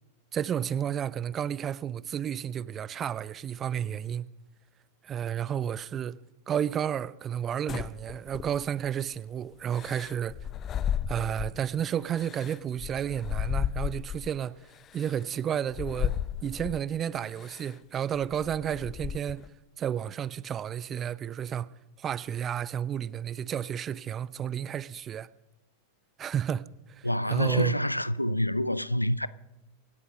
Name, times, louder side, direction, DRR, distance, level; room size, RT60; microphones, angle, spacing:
voice 1, 0.3-4.3 5.0-6.2 6.5-10.4 11.1-14.6 14.9-19.5 19.8-21.7 22.0-25.3 26.2-27.8, right 9 dB, 25° right, 0.5 m, -32 dB
sound 1, 7.7-8.9 9.7-11.7 12.1-14.3 15.0-15.1 15.7-16.9 17.4-17.7 18.2-19.5, left 9 dB, 30° left, 0.5 m, -34 dB
voice 2, 27.0-29.3, equal, 90° left, 0.4 m, -27 dB
25.0 x 8.3 x 5.2 m
figure-of-eight pair, 90°, 0 cm